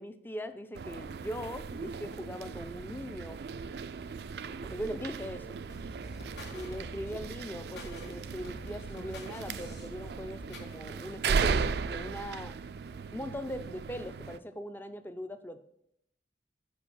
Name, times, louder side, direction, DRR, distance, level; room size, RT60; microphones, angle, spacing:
voice 1, 0.0-3.4 4.5-5.6 6.5-12.5 13.1-15.6, equal, 10° left, 10 dB, 0.4 m, -40 dB
sound 1, 0.7-14.4, right 5 dB, 65° right, 0.4 m, -36 dB
sound 2, 5.7-10.8, equal, 85° left, 2.1 m, -47 dB
6.4 x 5.1 x 6.3 m, 0.78 s
head